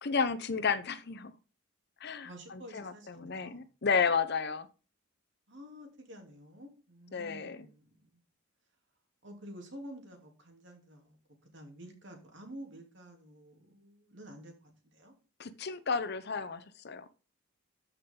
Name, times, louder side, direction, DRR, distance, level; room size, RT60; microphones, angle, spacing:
voice 1, 0.0-1.3 2.0-4.7 7.1-7.7 15.4-17.1, left 5 dB, 55° left, 14 dB, 0.8 m, -32 dB
voice 2, 2.2-3.7 5.5-8.2 9.2-11.2 11.5-15.1, equal, 65° right, 3 dB, 3.0 m, -50 dB
13.5 x 5.9 x 3.8 m, 0.36 s
head